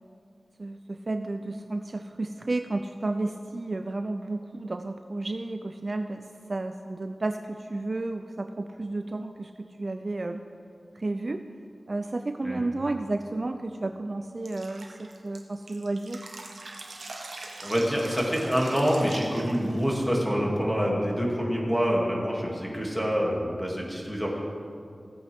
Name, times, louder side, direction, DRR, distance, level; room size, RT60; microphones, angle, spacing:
voice 1, 0.6-10.4 10.9-11.4 11.9-16.2, right 2 dB, 50° right, 7 dB, 0.4 m, -32 dB
Drip, 14.5-20.0, right 2 dB, 85° right, 1.1 m, -42 dB
voice 2, 17.6-24.4, equal, 5° right, -4 dB, 2.6 m, -26 dB
16.5 x 8.3 x 3.6 m, 2.4 s
wide cardioid pair, 55°, 0 cm